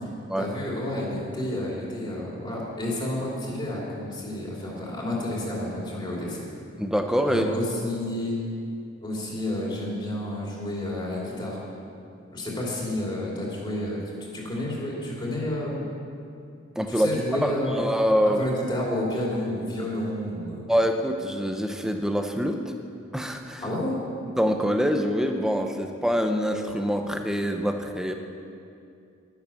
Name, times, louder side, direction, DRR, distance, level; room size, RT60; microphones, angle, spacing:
voice 1, 0.4-6.4 7.3-8.4 9.0-11.6 12.3-14.0 14.3-15.9 16.9-17.8 18.2-20.6 23.6-24.0, left 1 dB, 25° left, -4 dB, 2.9 m, -30 dB
voice 2, 6.8-7.4 16.8-18.4 20.7-22.7 23.1-23.6 24.4-28.1, equal, 5° right, 5 dB, 0.7 m, -25 dB
12.5 x 10.5 x 7.1 m, 2.5 s
head